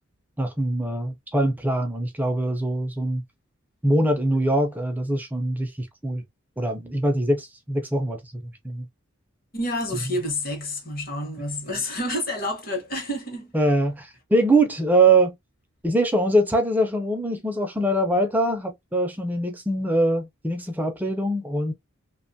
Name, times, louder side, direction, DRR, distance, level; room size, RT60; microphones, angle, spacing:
voice 1, 0.4-3.2 3.8-6.2 6.6-8.9 13.5-15.3 15.8-21.7, right 1 dB, 10° right, 0.4 m, -23 dB
voice 2, 9.5-13.8, left 1 dB, 45° left, 0.9 m, -29 dB
2.8 x 2.2 x 2.6 m
head